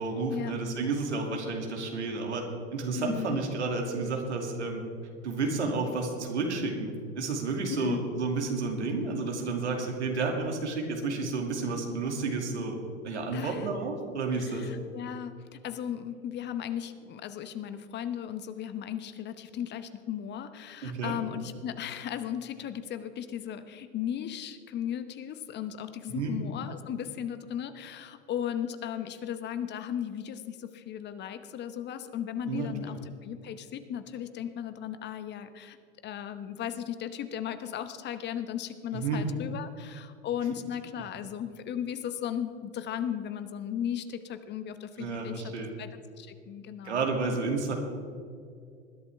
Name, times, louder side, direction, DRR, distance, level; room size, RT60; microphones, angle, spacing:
voice 1, 0.0-2.4 2.7-4.8 5.2-12.8 13.0-14.7 20.8-21.2 26.1-26.3 32.5-32.9 38.9-39.2 45.0-45.8 46.8-47.7, right 3 dB, 80° right, 2 dB, 2.6 m, -31 dB
voice 2, 2.9-3.4 7.7-8.0 13.3-13.7 14.5-35.8 36.0-45.5 45.8-45.9 46.2-47.1, left 9 dB, 30° left, 11 dB, 0.9 m, -36 dB
21.0 x 11.5 x 3.5 m, 2.3 s
hypercardioid pair, 95°, 34 cm